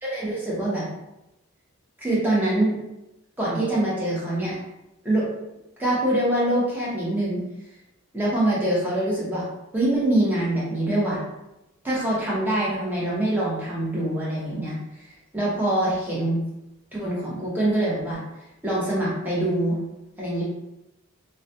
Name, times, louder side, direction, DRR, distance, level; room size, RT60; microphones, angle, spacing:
voice 1, 0.0-0.9 2.0-2.8 3.4-4.6 5.0-5.3 5.8-7.4 8.1-9.4 9.7-11.2 11.8-15.1 15.3-16.4 16.9-18.2 18.6-19.8 20.2-20.4, right 1 dB, 10° right, -7 dB, 0.7 m, -24 dB
2.3 x 2.1 x 2.7 m, 0.92 s
head